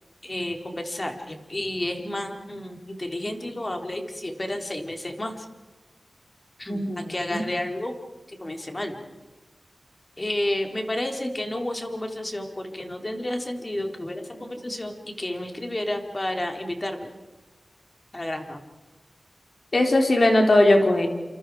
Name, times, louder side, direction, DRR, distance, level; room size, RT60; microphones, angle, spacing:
voice 1, 0.2-5.5 6.6-7.9 8.3-9.0 10.2-17.1 18.1-18.6, left 1 dB, 30° left, 4 dB, 3.9 m, -31 dB
voice 2, 6.7-7.4 19.7-21.1, left 1 dB, 55° left, 3 dB, 4.5 m, -19 dB
28.5 x 28.0 x 5.0 m, 1.2 s
wide cardioid pair, 70°, 0 cm